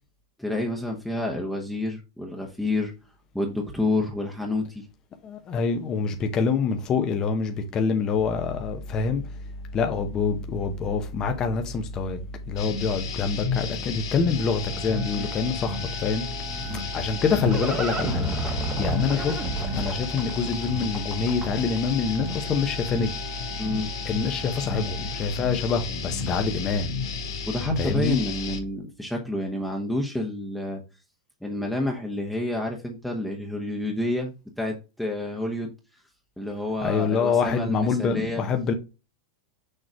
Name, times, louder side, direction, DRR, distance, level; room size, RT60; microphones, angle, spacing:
voice 1, 0.4-2.9 3.3-4.9 15.2-15.3 16.7-16.8 23.6-23.9 27.5-30.8 31.4-35.7 36.4-38.4, left 2 dB, 5° left, 1.0 m, -29 dB
voice 2, 5.2-23.1 24.0-26.9 27.8-28.2 36.8-38.7, left 5 dB, 25° left, 0.8 m, -26 dB
sound 1, 12.6-28.6, left 5 dB, 75° left, 2.2 m, -33 dB
sound 2, 14.3-25.2, right 6 dB, 80° right, 2.1 m, -43 dB
Livestock farm animals working animals, 16.7-21.8, right 3 dB, 20° right, 1.0 m, -32 dB
6.5 x 3.1 x 4.9 m
supercardioid pair, 135°, 3 cm